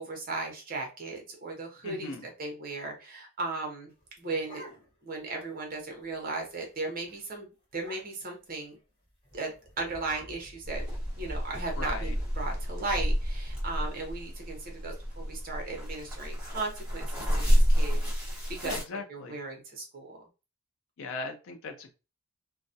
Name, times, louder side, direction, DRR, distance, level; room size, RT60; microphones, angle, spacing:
voice 1, 0.0-2.1 2.4-3.9 4.2-4.6 5.0-8.7 9.3-10.8 11.2-17.1 17.3-18.7 19.1-20.3, right 3 dB, 40° right, 1 dB, 0.7 m, -36 dB
voice 2, 1.8-2.3 11.8-12.2 18.6-19.4 21.0-21.9, left 3 dB, 60° left, 5 dB, 0.5 m, -38 dB
sound 1, 3.9-5.2 5.5-5.6 5.9-6.2 6.6-6.8 7.1-7.2 7.7-8.4 9.2-11.3, equal, 20° left, 1.2 m, -50 dB
sound 2, 10.6-18.8, equal, 5° right, 0.9 m, -29 dB
2.2 x 2.1 x 2.6 m, 0.31 s
head